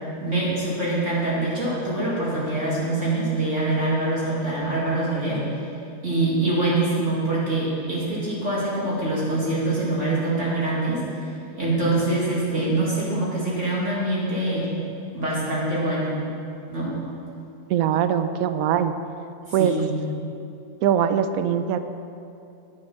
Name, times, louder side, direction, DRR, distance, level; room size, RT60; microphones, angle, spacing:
voice 1, 0.2-5.6 6.0-14.7 15.1-16.2 16.7-16.9 19.5-20.0, right 2 dB, 50° right, -8 dB, 2.7 m, -24 dB
voice 2, 17.7-18.9 19.5-19.7 20.8-21.8, right 9 dB, 70° right, 10 dB, 1.0 m, -21 dB
9.7 x 8.7 x 5.6 m, 2.6 s
omnidirectional pair, 1.6 m